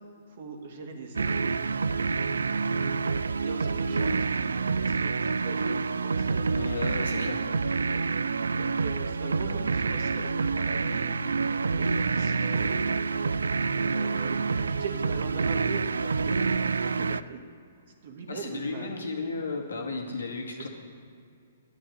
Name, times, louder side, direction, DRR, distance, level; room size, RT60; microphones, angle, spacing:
voice 1, 0.3-1.5 3.3-6.6 7.1-7.3 8.6-11.2 11.7-12.9 13.8-17.4 18.0-19.1 20.6-20.7, right 4 dB, 55° right, 3 dB, 2.1 m, -41 dB
sound 1, 1.2-17.2, right 4 dB, 85° right, 0.3 m, -27 dB
voice 2, 6.6-7.4 18.3-20.7, left 3 dB, 85° left, 1 dB, 2.2 m, -34 dB
11.0 x 8.7 x 8.0 m, 2.3 s
hypercardioid pair, 135°, 0 cm